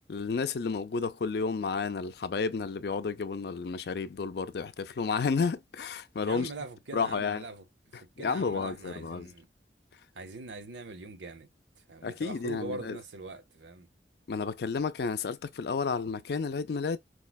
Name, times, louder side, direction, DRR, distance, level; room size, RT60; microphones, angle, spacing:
voice 1, 0.0-6.5 6.9-7.5 7.9-9.3 12.0-13.0 14.3-17.0, left 5 dB, 60° left, 0.4 m, -31 dB
voice 2, 6.2-7.6 7.9-9.5 10.1-11.5 11.8-13.9, right 3 dB, 90° right, 0.8 m, -42 dB
4.7 x 2.1 x 2.2 m
head